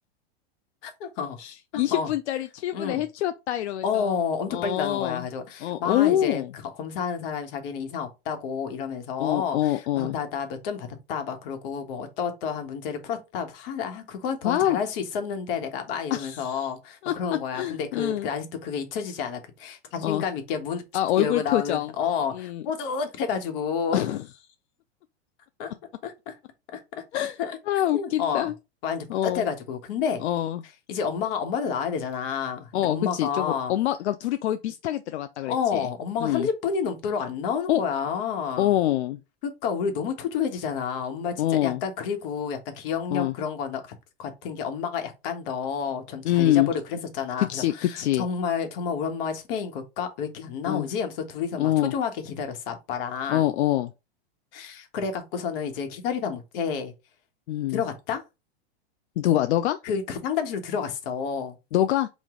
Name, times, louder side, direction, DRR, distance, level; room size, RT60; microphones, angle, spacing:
voice 1, 0.8-1.4 1.7-2.1 2.7-3.0 3.8-20.8 21.2-24.1 25.6-25.7 26.0-26.3 26.7-27.0 27.4-27.6 27.9-28.5 28.8-30.2 30.9-33.7 35.4-38.7 39.4-43.8 44.2-53.4 54.5-56.9 57.7-58.2 59.8-61.6, left 6 dB, 55° left, 1.3 m, -30 dB
voice 2, 1.4-4.2 4.5-5.2 5.6-6.5 9.2-10.2 14.4-14.8 16.1-16.7 17.0-17.1 17.5-18.3 20.0-20.2 20.9-21.9 22.3-22.6 23.9-24.2 27.1-27.4 27.7-28.5 29.1-29.4 30.2-30.6 32.7-35.9 36.2-36.5 37.7-37.8 38.6-39.2 41.4-41.8 43.1-43.3 46.2-46.7 47.4-48.3 50.7-50.9 51.6-51.9 53.3-53.9 57.5-57.8 59.2-59.8 61.7-62.1, left 13 dB, 85° left, 0.5 m, -25 dB
5.0 x 2.5 x 3.7 m
hypercardioid pair, 130°, 33 cm